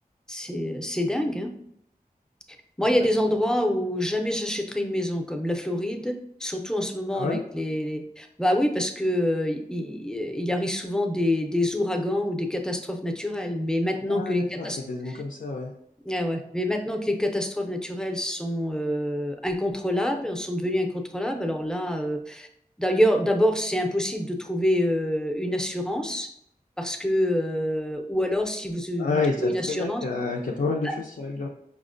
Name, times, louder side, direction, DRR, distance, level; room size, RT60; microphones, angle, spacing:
voice 1, 0.3-1.5 2.8-14.8 15.1-15.2 16.0-22.5 22.8-26.3 26.8-30.0, left 1 dB, 5° left, 3 dB, 0.5 m, -26 dB
voice 2, 14.1-15.7 29.0-31.5, left 4 dB, 70° left, -1 dB, 0.4 m, -29 dB
5.4 x 2.1 x 2.5 m, 0.73 s
wide cardioid pair, 45°, 16 cm